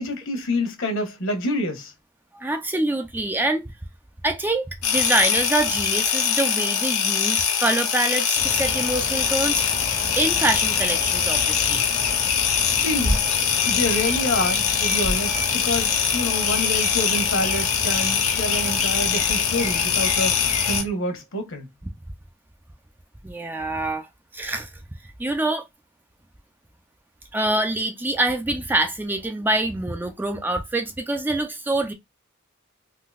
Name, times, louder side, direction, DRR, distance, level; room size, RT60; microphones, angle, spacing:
voice 1, 0.0-1.9 12.7-13.2 13.7-21.7, left 1 dB, 65° left, 1.1 m, -27 dB
voice 2, 2.3-3.7 4.2-9.6 10.2-11.8 23.2-24.1 24.3-24.7 25.2-25.7 27.3-31.9, right 2 dB, 10° right, 0.4 m, -25 dB
sound 1, 4.8-20.8, left 7 dB, 90° left, 0.9 m, -23 dB
sound 2, 8.3-20.8, left 2 dB, 35° left, 0.7 m, -31 dB
3.8 x 2.6 x 2.3 m
head